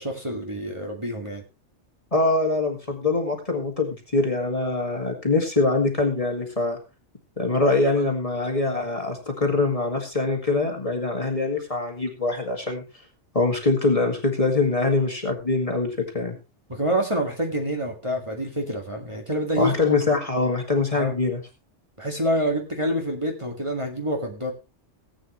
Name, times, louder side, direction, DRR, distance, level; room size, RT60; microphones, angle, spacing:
voice 1, 0.0-1.4 16.7-19.7 20.9-21.1 22.0-24.5, equal, 25° right, 1 dB, 2.1 m, -27 dB
voice 2, 2.1-6.8 7.4-12.8 13.3-15.9 16.1-16.3 19.6-21.4, left 3 dB, 25° left, 2 dB, 2.1 m, -23 dB
18.0 x 8.7 x 3.1 m, 0.29 s
omnidirectional pair, 1.3 m